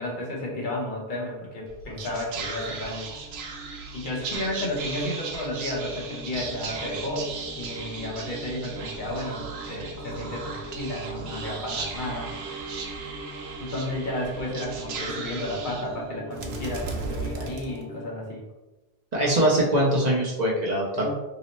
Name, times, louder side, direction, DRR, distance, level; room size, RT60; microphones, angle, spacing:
voice 1, 0.0-3.1 3.9-12.3 13.6-18.5 20.9-21.1, left 1 dB, 55° left, -2 dB, 0.9 m, -32 dB
Whispering, 1.7-18.2, right 4 dB, 85° right, 0.9 m, -36 dB
voice 2, 19.1-21.1, right 1 dB, 45° right, -4 dB, 0.8 m, -22 dB
2.9 x 2.1 x 4.1 m, 1.1 s
omnidirectional pair, 1.0 m